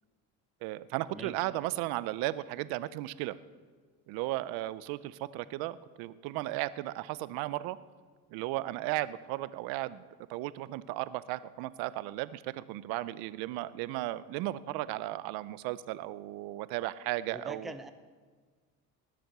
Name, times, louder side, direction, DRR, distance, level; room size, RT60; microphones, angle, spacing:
voice 1, 0.6-3.4 4.1-7.8 8.3-10.0 10.3-17.7, right 16 dB, 80° right, 17 dB, 0.6 m, -35 dB
voice 2, 17.3-17.9, right 1 dB, ahead, 8 dB, 0.7 m, -43 dB
19.5 x 7.6 x 6.7 m, 1.5 s
supercardioid pair, 95°, 36 cm